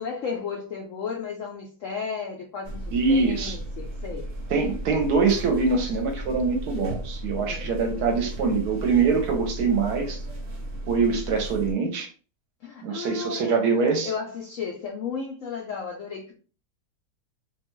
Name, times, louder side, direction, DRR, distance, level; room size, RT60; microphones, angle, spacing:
voice 1, 0.0-4.3 7.4-7.7 12.6-16.3, left 5 dB, 75° left, 0.7 m, -34 dB
sound 1, 2.6-11.7, right 1 dB, 40° right, 0.9 m, -35 dB
voice 2, 2.9-3.6 4.5-10.2 10.9-12.1 12.8-14.1, right 4 dB, 70° right, 1.1 m, -24 dB
2.8 x 2.3 x 3.0 m
omnidirectional pair, 1.9 m